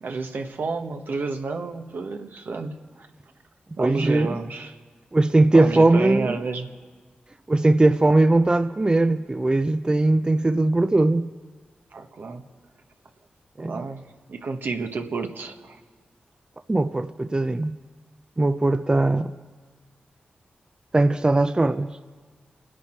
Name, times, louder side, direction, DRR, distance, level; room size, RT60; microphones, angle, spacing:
voice 1, 0.0-3.1 3.8-4.7 5.5-6.7 11.9-12.4 13.6-14.0 14.3-15.8, right 4 dB, 70° right, 4 dB, 1.3 m, -30 dB
voice 2, 3.8-4.4 5.1-6.4 7.5-11.3 13.6-13.8 16.7-17.8 18.4-19.3 20.9-22.0, right 2 dB, 25° right, 10 dB, 0.5 m, -20 dB
30.0 x 10.5 x 4.4 m, 1.4 s
cardioid pair, 50°, 3 cm